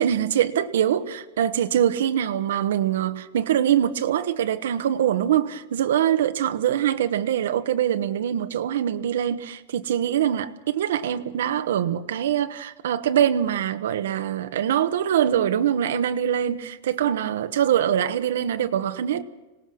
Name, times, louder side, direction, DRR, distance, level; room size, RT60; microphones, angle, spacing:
voice 1, 0.0-19.2, right 10 dB, 85° right, 1.1 m, -23 dB
25.5 x 18.5 x 6.3 m
supercardioid pair, 155°, 0 cm